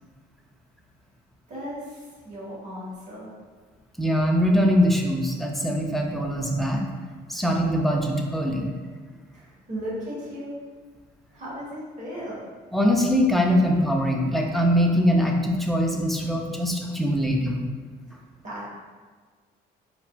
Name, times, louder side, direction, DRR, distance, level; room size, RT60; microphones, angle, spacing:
voice 1, 1.5-3.3 9.3-10.5 11.3-12.4 18.1-18.7, equal, 45° right, -7 dB, 1.2 m, -36 dB
voice 2, 4.0-6.8 7.3-8.7 12.7-17.6, equal, ahead, 0 dB, 0.3 m, -22 dB
4.0 x 2.1 x 2.2 m, 1.5 s
cardioid pair, 110°, 17 cm